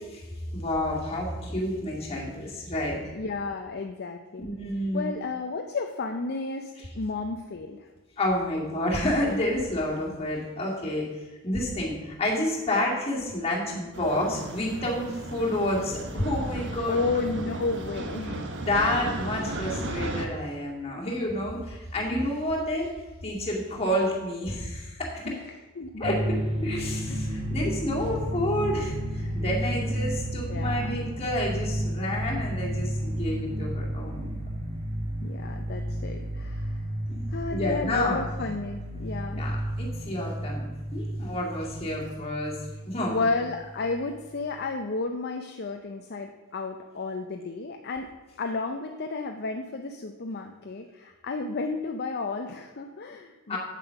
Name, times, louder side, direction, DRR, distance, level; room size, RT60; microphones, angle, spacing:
voice 1, 0.5-3.2 4.4-5.1 8.2-11.0 11.4-17.0 18.6-22.9 23.2-25.3 26.0-34.4 37.1-38.2 39.3-40.6 40.9-42.5 42.8-43.2 53.5-53.6, left 1 dB, 30° left, -3 dB, 2.3 m, -29 dB
voice 2, 3.1-4.5 4.9-7.9 16.9-18.4 19.4-19.5 25.2-25.4 25.8-26.2 27.1-27.4 30.0-30.1 30.5-30.9 35.2-36.8 37.3-39.4 43.1-48.1 48.4-53.6, left 3 dB, 50° left, 4 dB, 0.6 m, -32 dB
sound 1, 13.9-20.3, right 1 dB, 55° right, 1.1 m, -35 dB
sound 2, 26.0-44.1, equal, 30° right, 1.1 m, -32 dB
8.4 x 7.4 x 5.9 m, 1.2 s
head